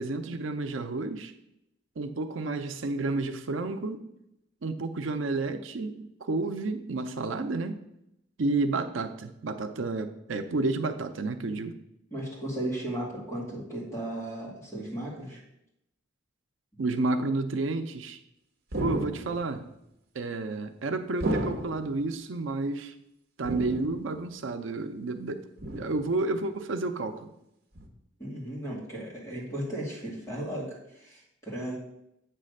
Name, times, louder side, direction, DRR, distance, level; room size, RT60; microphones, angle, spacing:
voice 1, 0.0-1.3 2.0-4.0 4.6-7.8 8.4-11.7 16.8-18.2 18.8-19.6 20.1-22.9 23.4-25.4 25.7-27.3, right 3 dB, 90° right, 8 dB, 0.6 m, -31 dB
voice 2, 12.1-15.4 28.2-31.8, right 1 dB, 15° left, -5 dB, 2.2 m, -35 dB
sound 1, 18.7-19.5 21.2-22.0 23.4-24.2 25.6-26.2 27.8-27.9, right 1 dB, 55° right, 1.0 m, -33 dB
8.4 x 3.3 x 6.4 m, 0.82 s
head